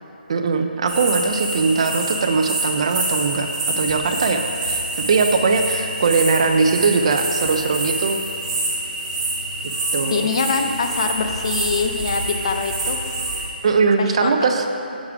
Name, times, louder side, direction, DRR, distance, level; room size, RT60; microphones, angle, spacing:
voice 1, 0.3-8.2 9.9-10.3 13.6-14.7, right 4 dB, 35° right, 5 dB, 0.4 m, -20 dB
sound 1, 0.9-13.5, right 2 dB, 10° right, 1.4 m, -26 dB
voice 2, 10.0-13.0 14.0-14.3, left 5 dB, 35° left, 5 dB, 0.4 m, -24 dB
7.3 x 4.9 x 4.8 m, 2.8 s
hypercardioid pair, 170°, 5 cm